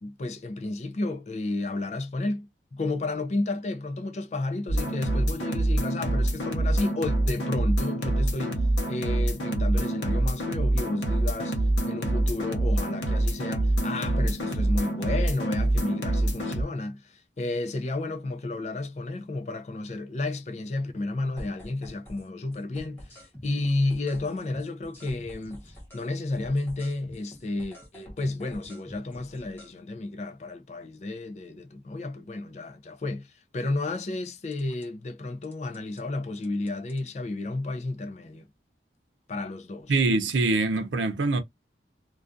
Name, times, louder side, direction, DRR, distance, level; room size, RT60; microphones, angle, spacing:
voice 1, 0.0-11.6 11.9-38.5 39.3-40.0, left 2 dB, 40° left, 0.4 m, -32 dB
sound 1, 4.7-16.6, right 1 dB, 90° left, 0.7 m, -26 dB
sound 2, 21.4-22.3 22.5-26.1 26.3-29.7 34.5-34.9 35.4-36.0 36.4-37.0, equal, 10° left, 0.8 m, -46 dB
voice 2, 39.9-41.4, right 3 dB, 90° right, 0.5 m, -24 dB
2.3 x 2.3 x 2.5 m
head